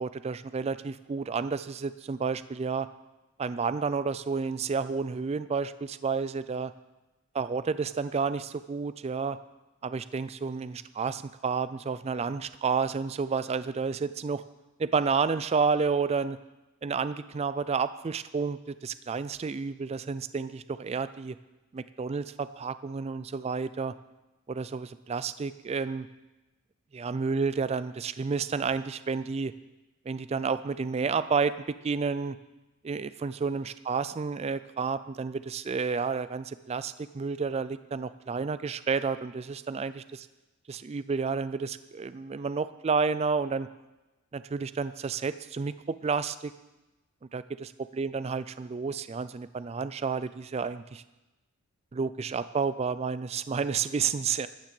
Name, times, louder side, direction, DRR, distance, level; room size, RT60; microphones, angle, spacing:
voice 1, 0.0-2.9 3.4-6.7 7.3-9.4 9.8-14.4 14.8-16.4 16.8-21.4 21.7-23.9 24.5-26.1 26.9-29.5 30.1-32.4 32.8-40.3 40.7-43.7 44.3-46.5 47.3-47.7 48.0-51.0 51.9-54.5, right 5 dB, 30° right, 14 dB, 0.3 m, -30 dB
13.5 x 6.1 x 7.6 m, 1.1 s
head